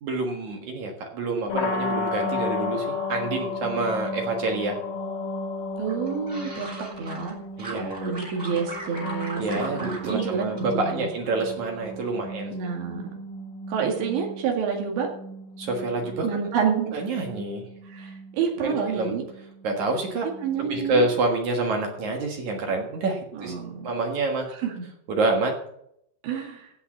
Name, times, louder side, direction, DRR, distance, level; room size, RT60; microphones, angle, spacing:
voice 1, 0.0-4.8 7.6-8.0 9.3-12.5 15.6-16.3 16.9-17.7 18.6-19.1 19.6-20.3 20.7-23.6 23.8-24.5 25.1-25.5, right 3 dB, 55° right, 2 dB, 2.3 m, -27 dB
sound 1, 1.5-21.3, left 2 dB, 60° left, 2.7 m, -34 dB
sound 2, 5.8-7.3 7.6-10.3 10.6-11.3 11.6-12.1, right 2 dB, 15° right, 2.7 m, -38 dB
voice 2, 5.8-6.7 7.0-7.4 7.7-9.4 9.8-11.1 12.5-13.2 13.7-15.1 16.2-17.0 17.9-19.2 20.4-21.1 23.3-23.9 24.6-24.7 26.2-26.7, right 6 dB, 80° right, 0 dB, 4.4 m, -28 dB
16.0 x 5.7 x 7.2 m, 0.74 s
omnidirectional pair, 5.1 m